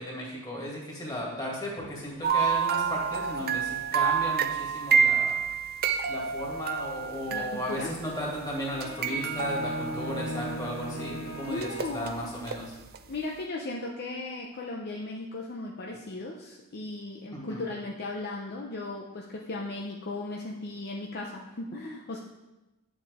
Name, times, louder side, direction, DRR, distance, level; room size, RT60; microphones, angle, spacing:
voice 1, 0.0-5.4 6.1-12.6 17.3-17.6, equal, 20° left, -4 dB, 2.3 m, -35 dB
sound 1, 2.2-8.1 8.7-10.8 11.6-12.6 12.9-13.0, right 6 dB, 45° right, 0.5 m, -28 dB
voice 2, 7.3-7.9 11.5-12.3 13.1-22.2, left 2 dB, 45° left, -1 dB, 0.7 m, -36 dB
sound 2, 8.6-12.6, equal, 80° left, 1.4 m, -38 dB
8.9 x 7.4 x 3.6 m, 1.0 s
head